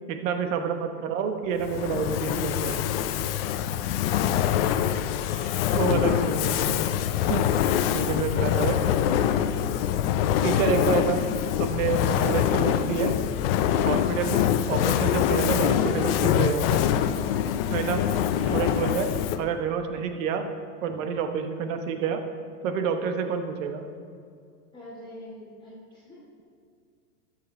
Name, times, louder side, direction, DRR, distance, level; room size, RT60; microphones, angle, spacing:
voice 1, 0.1-2.8 5.3-6.8 7.3-7.5 7.9-8.8 10.4-11.2 11.6-13.2 13.8-16.9 17.7-18.0 18.5-19.1 19.4-20.5 20.8-22.2 22.6-23.9, right 6 dB, 55° right, 7 dB, 1.2 m, -28 dB
Fire, 1.6-19.5, left 10 dB, 40° left, 0.5 m, -24 dB
voice 2, 24.7-26.2, left 1 dB, 10° left, -9 dB, 2.1 m, -45 dB
13.0 x 7.0 x 4.2 m, 2.3 s
hypercardioid pair, 120°, 47 cm